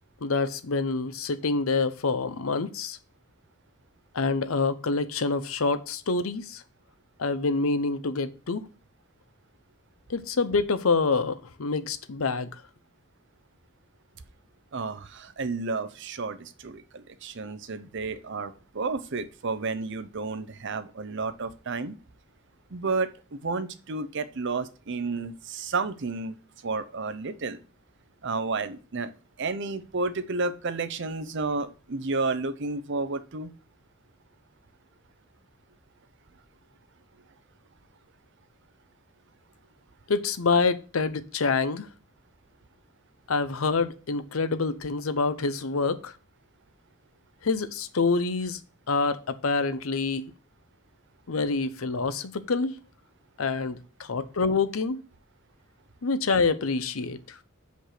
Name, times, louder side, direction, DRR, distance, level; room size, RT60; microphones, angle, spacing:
voice 1, 0.2-3.0 4.1-6.6 7.2-8.6 10.1-12.5 40.1-41.9 43.3-46.1 47.4-48.6 48.9-50.3 51.3-52.8 53.4-55.0 56.0-57.4, left 4 dB, 80° left, 0.7 m, -26 dB
voice 2, 14.7-22.0 22.7-26.4 26.6-27.6 28.2-29.1 29.4-33.5, right 3 dB, 60° right, 0.7 m, -31 dB
5.9 x 5.2 x 6.6 m
head